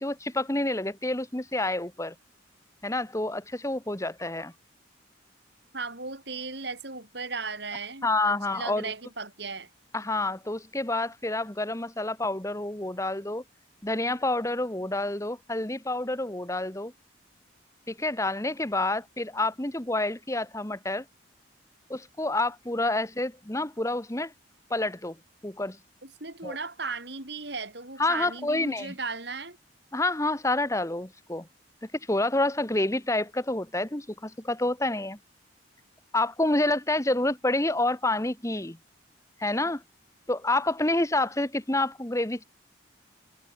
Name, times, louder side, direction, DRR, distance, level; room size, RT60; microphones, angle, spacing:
voice 1, 0.0-2.1 2.8-4.5 8.0-8.9 9.9-13.4 13.8-16.9 17.9-21.0 21.9-24.3 24.7-25.1 25.4-25.8 26.4-26.5 28.0-28.9 29.9-31.5 32.1-35.2 36.1-38.8 39.4-39.8 40.3-42.4, left 2 dB, 15° left, 1.4 m, -28 dB
voice 2, 5.7-9.7 26.0-29.6, right 4 dB, 60° right, 5.5 m, -36 dB
head